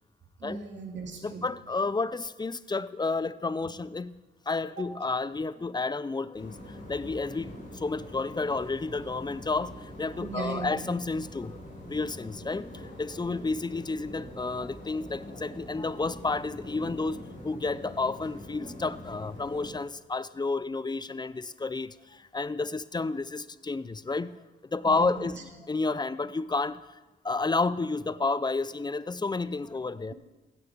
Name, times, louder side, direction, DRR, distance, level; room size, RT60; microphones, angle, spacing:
voice 1, 0.4-1.4 10.2-10.7 24.9-25.3, right 4 dB, 75° right, 2 dB, 2.5 m, -38 dB
voice 2, 1.2-4.2 4.5-11.6 11.9-17.2 17.4-26.9 27.2-30.1, left 3 dB, 25° left, 17 dB, 0.5 m, -31 dB
sound 1, 6.3-19.7, left 1 dB, 45° left, 6.0 m, -44 dB
15.5 x 10.0 x 5.2 m, 1.1 s
cardioid pair, 80°, 19 cm